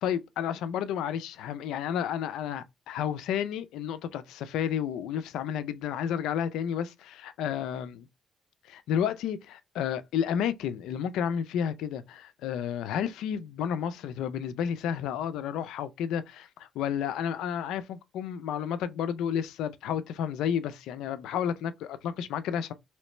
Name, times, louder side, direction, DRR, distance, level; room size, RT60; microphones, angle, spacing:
voice 1, 0.0-7.9 8.6-22.7, left 8 dB, 90° left, 0.3 m, -31 dB
3.1 x 3.1 x 2.9 m
cardioid pair, 90°, 0 cm